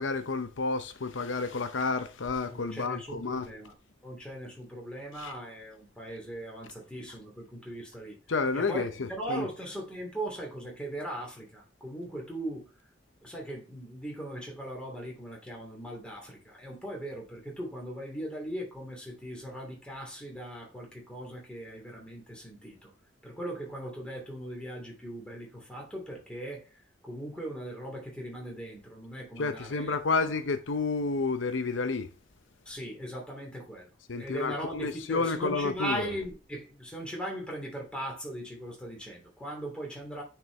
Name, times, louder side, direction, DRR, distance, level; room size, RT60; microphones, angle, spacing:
voice 1, 0.0-3.5 5.2-5.3 8.3-9.5 29.4-32.1 34.1-36.1, left 4 dB, 90° left, 0.8 m, -30 dB
voice 2, 2.5-3.7 4.0-8.2 8.5-12.7 13.2-22.9 23.2-30.0 32.6-40.2, right 1 dB, 5° left, 2.9 m, -39 dB
9.5 x 4.6 x 3.4 m
head